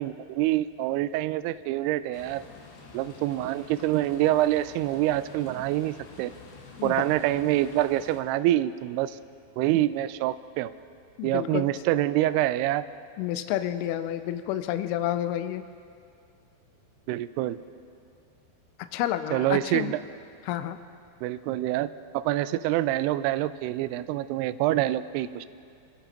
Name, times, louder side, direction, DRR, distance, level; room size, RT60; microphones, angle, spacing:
voice 1, 0.0-2.4 2.9-6.3 6.8-9.2 9.6-10.7 11.2-12.9 17.1-17.6 19.3-20.0 21.2-21.9 22.1-25.5, right 14 dB, 90° right, 13 dB, 2.3 m, -26 dB
sound 1, 2.1-8.2, left 4 dB, 65° left, 3.4 m, -48 dB
voice 2, 11.2-11.7 13.2-15.6 18.9-19.9 20.5-20.8, left 12 dB, 90° left, 10 dB, 2.2 m, -29 dB
26.5 x 17.0 x 3.0 m, 2.3 s
omnidirectional pair, 5.2 m